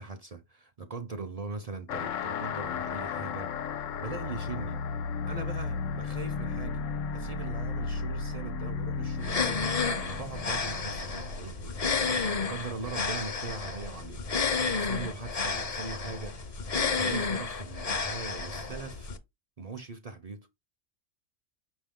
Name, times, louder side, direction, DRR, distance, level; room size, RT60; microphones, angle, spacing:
voice 1, 0.0-3.5 4.0-4.8 5.3-6.8 7.1-14.2 14.7-19.1 19.6-20.5, right 4 dB, 50° right, 0.4 m, -41 dB
sound 1, 1.9-12.9, left 5 dB, 90° left, 1.0 m, -35 dB
sound 2, 9.2-19.2, left 4 dB, 45° left, 0.5 m, -31 dB
5.7 x 2.6 x 3.5 m
omnidirectional pair, 1.3 m